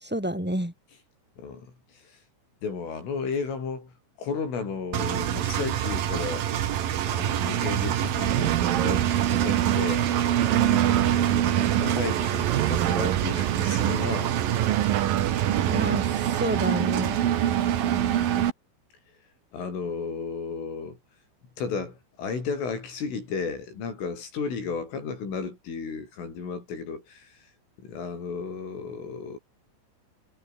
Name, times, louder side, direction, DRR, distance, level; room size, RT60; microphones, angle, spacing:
voice 1, 0.0-0.7 15.6-17.2, equal, 5° right, 2.1 m, -29 dB
voice 2, 1.4-2.2 2.6-6.5 7.0-10.3 11.1-14.3 19.5-21.0 21.6-27.5 27.8-29.4, left 5 dB, 75° left, 10.5 m, -34 dB
Engine, 4.9-18.5, right 11 dB, 55° right, 3.0 m, -25 dB
sound 1, 8.3-9.8 10.3-11.9 12.4-14.0 14.5-16.1, right 13 dB, 75° right, 2.1 m, -27 dB
omnidirectional pair, 5.7 m